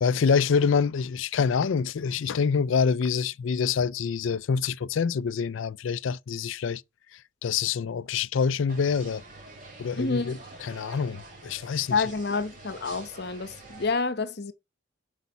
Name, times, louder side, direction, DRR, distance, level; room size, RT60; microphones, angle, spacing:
voice 1, 0.0-6.8 7.1-9.2 9.8-12.0, left 6 dB, 70° left, 0.4 m, -26 dB
sound 1, 8.7-13.9, right 2 dB, 40° right, 3.4 m, -47 dB
voice 2, 10.0-10.4 11.9-14.5, left 4 dB, 50° left, 0.9 m, -28 dB
8.1 x 5.3 x 5.7 m
head